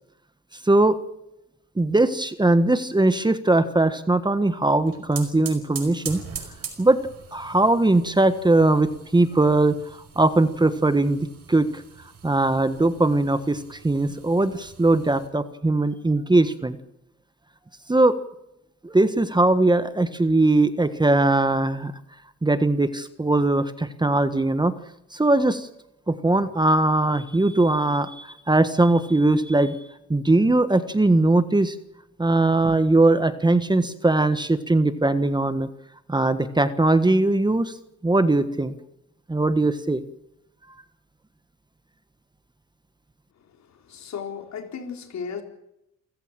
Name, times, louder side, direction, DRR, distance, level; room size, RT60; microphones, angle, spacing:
voice 1, 0.6-1.0 1.8-6.2 6.8-7.0 7.3-9.8 10.1-11.8 12.2-16.8 17.9-18.1 18.8-21.9 22.4-24.7 25.1-25.7 26.1-29.8 30.1-31.8 32.2-35.7 36.1-37.7 38.0-38.7 39.3-40.0, right 2 dB, 15° right, 11 dB, 1.4 m, -20 dB
sound 1, 4.7-15.3, right 6 dB, 50° right, 5.2 m, -42 dB
voice 2, 43.4-45.4, left 6 dB, 65° left, 4 dB, 4.3 m, -35 dB
28.0 x 15.5 x 7.6 m, 0.85 s
cardioid pair, 90°, 30 cm